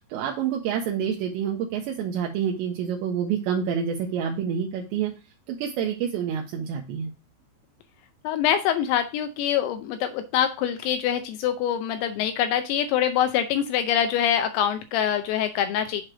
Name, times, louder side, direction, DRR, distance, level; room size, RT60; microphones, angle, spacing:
voice 1, 0.0-5.1 5.5-7.1, right 8 dB, 80° right, 1 dB, 2.8 m, -28 dB
voice 2, 8.2-16.0, left 9 dB, 80° left, 8 dB, 2.7 m, -24 dB
7.6 x 3.2 x 6.0 m, 0.29 s
omnidirectional pair, 5.4 m